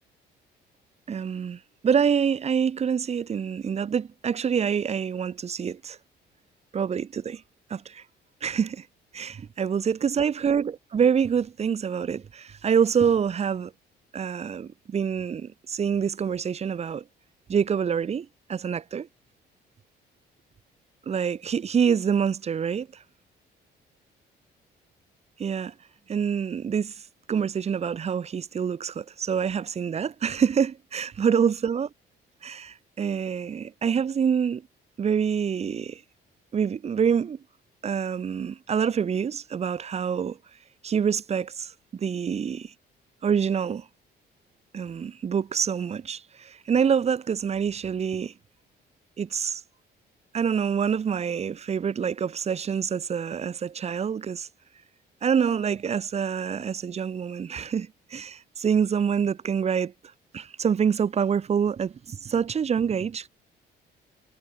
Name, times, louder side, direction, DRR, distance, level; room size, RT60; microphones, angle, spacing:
voice 1, 1.1-6.0 6.7-7.4 7.7-8.0 8.4-8.9 9.1-13.7 14.1-17.0 17.5-19.1 21.1-23.0 25.4-25.7 26.1-27.0 27.3-31.9 32.4-34.6 35.0-36.0 36.5-37.4 37.8-40.4 40.8-42.7 43.2-43.8 44.7-48.3 49.2-49.6 50.3-54.5 55.2-59.9 60.3-63.3, right 7 dB, 35° right, 7.5 m, -26 dB
cardioid pair, 150°, 18 cm